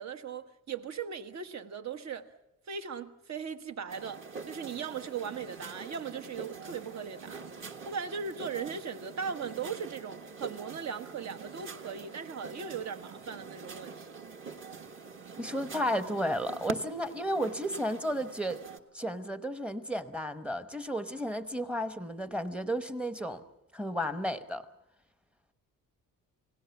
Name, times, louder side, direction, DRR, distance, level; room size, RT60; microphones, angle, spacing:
voice 1, 0.0-2.3 2.7-14.1, right 6 dB, 55° right, 1.4 m, -38 dB
sound 1, 3.9-18.8, right 5 dB, 35° right, 1.5 m, -45 dB
voice 2, 15.4-18.6 18.9-23.4 23.7-24.6, equal, 5° right, 0.9 m, -33 dB
29.5 x 17.5 x 7.1 m
wide cardioid pair, 165°, 34 cm